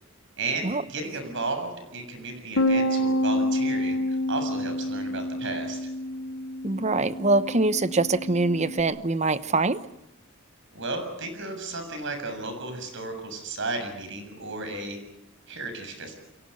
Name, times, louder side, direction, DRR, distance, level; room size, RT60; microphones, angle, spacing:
voice 1, 0.4-5.9 10.7-15.0 15.5-16.2, right 3 dB, 65° right, 7 dB, 7.0 m, -34 dB
Bass guitar, 2.6-8.8, left 1 dB, 70° left, 1.4 m, -28 dB
voice 2, 6.6-9.8, right 3 dB, 35° right, 14 dB, 0.9 m, -24 dB
30.0 x 23.0 x 6.6 m, 0.87 s
head